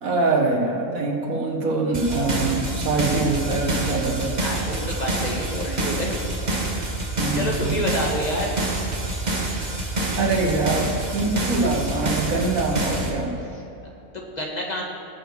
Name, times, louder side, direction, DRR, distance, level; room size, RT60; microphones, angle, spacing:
voice 1, 0.0-4.4 7.2-7.9 10.2-13.4, right 3 dB, 85° right, 1 dB, 1.9 m, -24 dB
sound 1, 1.9-13.1, right 2 dB, 35° right, 1.4 m, -27 dB
voice 2, 4.4-6.3 7.3-8.6 14.1-14.8, equal, 30° left, -2 dB, 1.8 m, -28 dB
19.0 x 6.8 x 4.7 m, 2.9 s
omnidirectional pair, 1.4 m